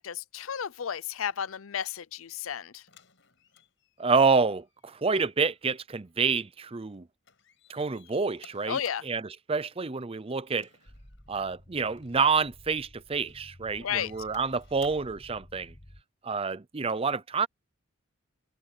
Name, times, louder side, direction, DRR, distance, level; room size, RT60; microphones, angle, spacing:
voice 1, 0.0-2.8 8.6-9.0 13.8-14.1, left 8 dB, 80° left, 0.6 m, -33 dB
sound 1, 2.9-7.0 7.2-9.3 10.5-11.5 11.9-12.2 12.9-13.5 13.8-15.2 16.4-16.5, left 6 dB, 65° left, 7.1 m, -59 dB
voice 2, 4.0-7.0 7.7-10.7 11.3-15.7 16.2-17.5, right 4 dB, 30° right, 0.6 m, -28 dB
sound 2, 10.9-16.0, left 1 dB, 25° left, 2.2 m, -53 dB
head